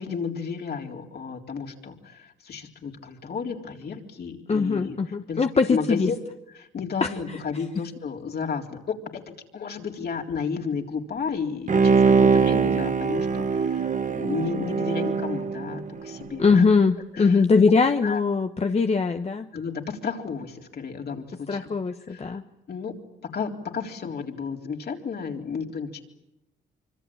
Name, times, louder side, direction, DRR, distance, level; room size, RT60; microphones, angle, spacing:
voice 1, 0.0-5.0 5.3-5.4 5.7-6.2 6.5-16.6 17.1-17.7 18.0-18.2 19.5-21.6 22.0-22.4 22.7-22.9 23.3-26.0, left 5 dB, 55° left, 2 dB, 3.9 m, -32 dB
voice 2, 4.5-6.1 7.0-7.1 16.4-19.5 21.5-22.4, left 4 dB, 30° left, 7 dB, 1.2 m, -21 dB
Bowed string instrument, 11.7-16.3 16.7-16.8, right 5 dB, 40° right, 1.5 m, -22 dB
25.5 x 25.0 x 8.8 m, 0.89 s
cardioid pair, 90°, 20 cm